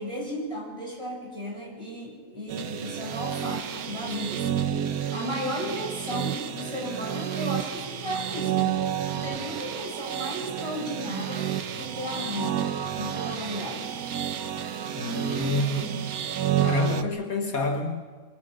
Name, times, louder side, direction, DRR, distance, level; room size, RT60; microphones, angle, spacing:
voice 1, 0.0-4.6 5.1-8.8 9.1-13.9, equal, 20° right, -3 dB, 7.3 m, -35 dB
sound 1, 2.5-17.0, right 10 dB, 70° right, 1.5 m, -30 dB
voice 2, 14.9-16.1 16.6-18.0, left 2 dB, 65° left, 3 dB, 1.9 m, -28 dB
25.5 x 25.5 x 5.4 m, 1.5 s
omnidirectional pair, 1.6 m